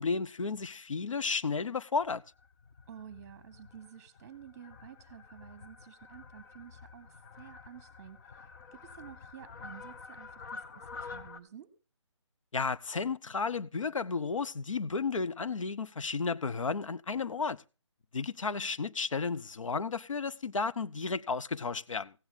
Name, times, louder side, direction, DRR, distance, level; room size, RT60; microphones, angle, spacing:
voice 1, 0.0-2.2 12.5-17.6 18.1-22.1, left 4 dB, 85° left, 0.6 m, -33 dB
Fowl, 2.0-11.4, left 4 dB, 40° left, 1.0 m, -49 dB
voice 2, 2.9-11.7, right 9 dB, 35° right, 1.2 m, -51 dB
16.0 x 8.9 x 3.8 m
figure-of-eight pair, 150°, 16 cm